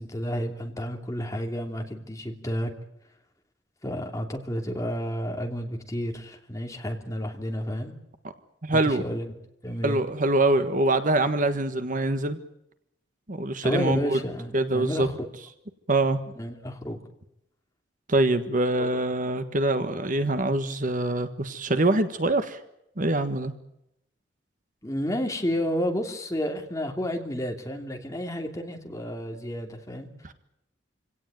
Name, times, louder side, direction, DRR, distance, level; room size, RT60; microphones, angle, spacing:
voice 1, 0.0-2.7 3.8-7.9 8.7-9.3 9.6-10.0 13.6-15.2 16.4-17.0 18.8-19.0 24.8-30.1, equal, 15° left, 3 dB, 2.8 m, -31 dB
voice 2, 8.6-9.0 9.8-12.4 13.3-14.2 14.5-15.1 15.9-16.2 18.1-22.6 23.0-23.5 30.2-30.3, right 2 dB, 45° right, 10 dB, 1.4 m, -24 dB
26.5 x 17.5 x 9.1 m, 0.82 s
head